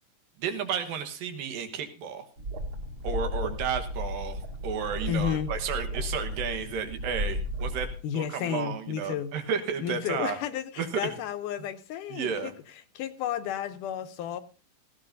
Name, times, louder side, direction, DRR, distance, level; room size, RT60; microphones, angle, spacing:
voice 1, 0.4-2.3 3.0-10.4 10.8-11.1 12.1-12.5, right 7 dB, 85° right, 7 dB, 3.1 m, -32 dB
sound 1, 2.4-7.9, left 1 dB, 40° right, 2.7 m, -34 dB
voice 2, 5.1-5.5 8.0-9.3 9.8-12.5 13.0-14.4, left 9 dB, 75° left, 9 dB, 2.3 m, -32 dB
18.5 x 15.5 x 2.6 m, 0.35 s
omnidirectional pair, 3.9 m